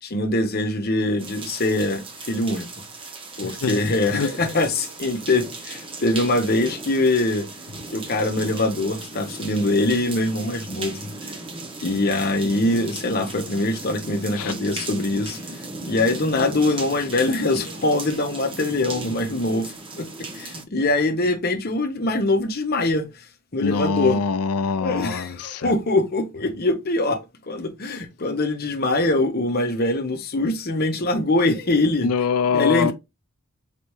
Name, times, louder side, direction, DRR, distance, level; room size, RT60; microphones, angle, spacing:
voice 1, 0.0-2.7 3.4-7.5 7.9-11.1 11.8-15.5 15.8-20.1 20.3-23.1 23.5-24.2 24.8-27.2 27.5-32.1 32.5-32.9, left 2 dB, 45° left, 0.8 m, -23 dB
sound 1, 1.2-20.6, right 3 dB, 25° right, 0.7 m, -37 dB
voice 2, 3.4-3.8 4.1-4.3 14.4-14.5 23.6-25.7 32.0-32.9, left 5 dB, 90° left, 0.5 m, -24 dB
4.1 x 3.3 x 3.0 m
head